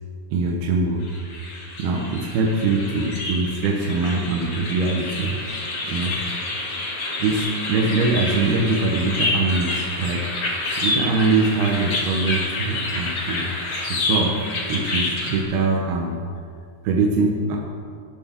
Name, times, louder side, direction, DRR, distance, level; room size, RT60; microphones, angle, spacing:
voice 1, 0.3-1.1 1.8-5.4 5.8-6.2 7.2-10.2 10.8-13.5 13.9-14.4 14.7-16.2 16.8-17.6, right 3 dB, 75° right, -1 dB, 2.7 m, -22 dB
sound 1, 1.0-15.4, left 2 dB, 60° left, 1.1 m, -28 dB
17.0 x 7.7 x 3.6 m, 2.3 s
omnidirectional pair, 4.9 m